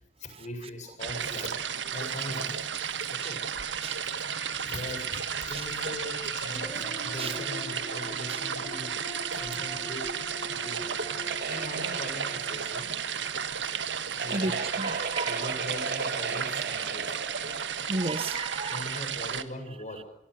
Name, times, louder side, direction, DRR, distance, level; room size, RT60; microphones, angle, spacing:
voice 1, 0.2-1.6 1.9-2.6 3.1-3.4 4.0-4.2 4.5-8.9 9.3-11.1 11.5-12.9 14.2-14.5 15.3-17.2 18.7-20.1, left 1 dB, 45° left, 7.7 m, -41 dB
sound 1, 1.0-19.4, right 7 dB, 80° right, 1.6 m, -33 dB
sound 2, 3.2-14.7, left 2 dB, 20° left, 7.7 m, -45 dB
sound 3, 11.2-17.9, right 4 dB, 60° right, 2.3 m, -37 dB
voice 2, 14.3-15.6 17.9-19.2, right 2 dB, 35° right, 1.0 m, -34 dB
25.0 x 24.5 x 6.6 m
head